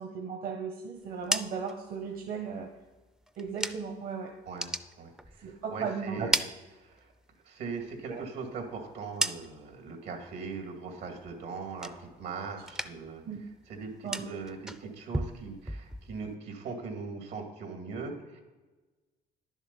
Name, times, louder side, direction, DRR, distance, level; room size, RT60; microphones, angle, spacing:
voice 1, 0.0-2.7 3.4-4.3 5.4-6.3 8.1-8.2 13.3-13.4 14.0-14.3, right 6 dB, 60° right, 2 dB, 1.2 m, -36 dB
sound 1, 1.0-4.1 4.4-5.7 6.0-7.3 7.7-9.8 10.2-10.7 11.0-12.3 12.6-13.2 13.5-16.3, right 1 dB, 5° right, 0.4 m, -37 dB
voice 2, 5.0-6.4 6.8-7.1 7.4-13.2 13.7-18.4, right 4 dB, 80° right, 3 dB, 2.3 m, -40 dB
10.5 x 7.2 x 5.4 m, 1.2 s
cardioid pair, 110°, 17 cm